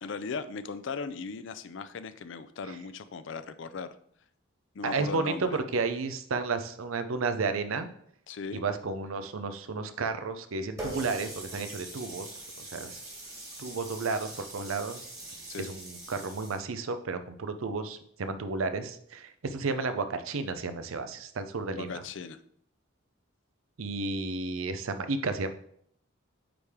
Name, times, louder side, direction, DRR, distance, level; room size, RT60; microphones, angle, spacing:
voice 1, 0.0-4.0 4.7-5.6 8.3-8.6 15.5-15.7 21.7-22.4, left 5 dB, 65° left, 12 dB, 0.4 m, -38 dB
voice 2, 4.8-7.9 8.5-13.0 13.6-15.1 15.6-22.0 23.8-25.5, right 4 dB, 85° right, 9 dB, 0.6 m, -32 dB
Water tap faucet, 10.8-16.6, right 2 dB, 15° right, 1.6 m, -42 dB
8.6 x 3.4 x 3.6 m, 0.65 s
head